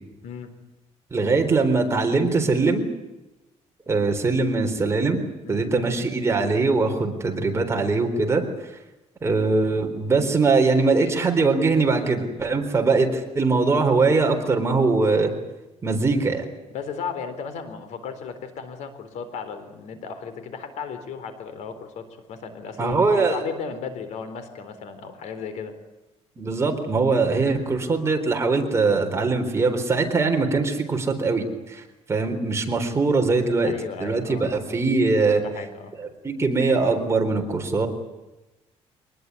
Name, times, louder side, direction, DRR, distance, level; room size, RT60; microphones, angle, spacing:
voice 1, 1.1-2.8 3.9-8.4 9.2-15.3 15.8-16.5 22.8-23.4 26.4-31.8 32.1-33.7 34.0-35.4 36.0-37.9, right 3 dB, 25° right, 4 dB, 4.0 m, -22 dB
voice 2, 5.4-5.9 16.7-25.8 27.5-27.8 33.6-34.7 35.3-35.9, left 6 dB, 75° left, 10 dB, 4.0 m, -35 dB
25.0 x 20.0 x 9.6 m, 1.0 s
cardioid pair, 130°, 12 cm